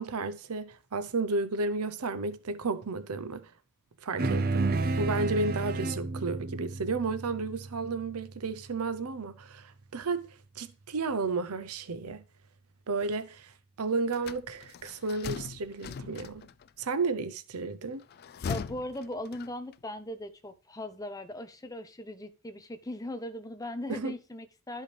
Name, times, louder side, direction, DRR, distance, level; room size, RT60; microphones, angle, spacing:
voice 1, 0.0-3.5 4.0-12.2 12.9-13.5 13.8-16.5 16.8-18.0 23.9-24.1, right 3 dB, 90° right, 0.7 m, -32 dB
sound 1, 4.2-8.9, right 3 dB, 40° right, 0.6 m, -32 dB
sound 2, 14.1-16.7 18.0-19.8, left 6 dB, 45° left, 0.3 m, -39 dB
voice 2, 18.5-24.8, left 1 dB, 15° left, 0.8 m, -39 dB
12.0 x 5.5 x 3.3 m
head